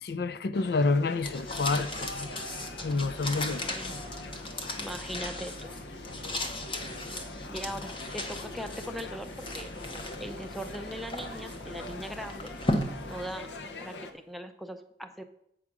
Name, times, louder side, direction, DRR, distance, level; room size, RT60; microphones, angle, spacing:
voice 1, 0.0-2.3 2.8-4.0, left 3 dB, 60° left, 0.4 m, -29 dB
sound 1, 0.5-14.1, left 2 dB, 80° left, 0.8 m, -44 dB
sound 2, 1.2-13.8, left 1 dB, 30° left, 0.9 m, -37 dB
voice 2, 3.5-4.0 4.8-5.7 7.5-9.7 10.2-12.5 13.0-13.5 13.8-15.2, equal, ahead, 0.5 m, -40 dB
8.4 x 4.9 x 6.0 m
head